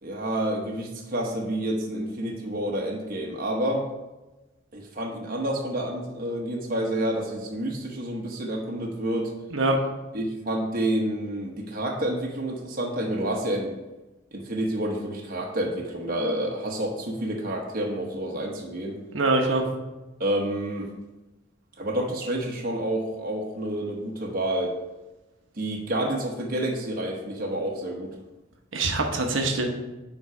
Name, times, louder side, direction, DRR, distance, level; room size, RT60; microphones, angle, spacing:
voice 1, 0.0-3.9 4.7-9.3 10.1-13.8 14.3-19.0 20.2-20.9 21.8-24.7 25.5-28.2, right 1 dB, 45° right, 0 dB, 1.0 m, -29 dB
voice 2, 19.1-19.6 28.7-29.7, right 2 dB, 80° right, 3 dB, 1.0 m, -23 dB
9.4 x 3.9 x 4.9 m, 1.1 s
head